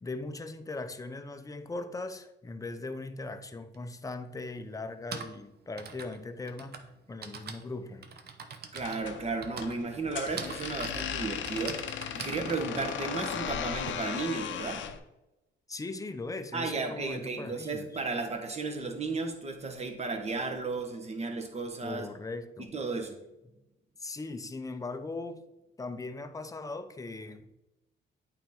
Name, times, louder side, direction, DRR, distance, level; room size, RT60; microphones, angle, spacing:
voice 1, 0.0-8.1 15.7-17.9 21.8-22.7 24.0-25.5 25.8-27.5, left 3 dB, 15° left, 0.6 m, -39 dB
Typing, 3.7-3.8 4.8-13.9, right 5 dB, 55° right, 0.8 m, -44 dB
voice 2, 8.7-11.8 12.1-14.9 16.5-22.0 22.7-23.2, right 3 dB, 30° right, 1.3 m, -34 dB
sound 1, 8.8-15.0, left 8 dB, 70° left, 0.7 m, -37 dB
8.8 x 4.4 x 3.7 m
cardioid pair, 90°, 20 cm